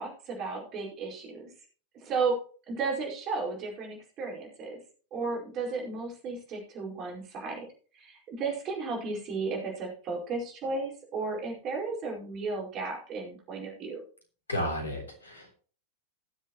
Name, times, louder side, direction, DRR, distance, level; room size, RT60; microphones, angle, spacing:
voice 1, 0.0-1.5 2.0-2.3 2.7-4.8 5.1-7.7 7.9-14.0, right 4 dB, 35° right, -1 dB, 4.7 m, -34 dB
voice 2, 14.5-15.5, left 1 dB, 75° left, 3 dB, 3.5 m, -33 dB
19.0 x 7.4 x 3.1 m, 0.40 s
figure-of-eight pair, 90°, 0 cm